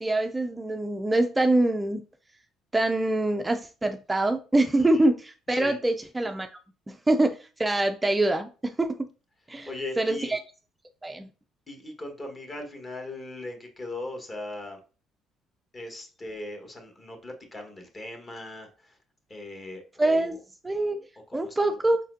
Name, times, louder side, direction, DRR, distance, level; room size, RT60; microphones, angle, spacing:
voice 1, 0.0-2.0 2.7-6.5 6.9-9.1 9.5-9.7 10.0-10.4 11.0-11.3 20.0-20.4 20.6-21.0 21.3-22.0, right 2 dB, 15° right, 6 dB, 0.4 m, -24 dB
voice 2, 9.7-10.4 11.7-14.8 15.7-19.0 19.3-20.4 21.3-21.8, left 2 dB, 30° left, 3 dB, 1.3 m, -39 dB
5.0 x 4.1 x 2.5 m, 0.35 s
cardioid pair, 100°, 0 cm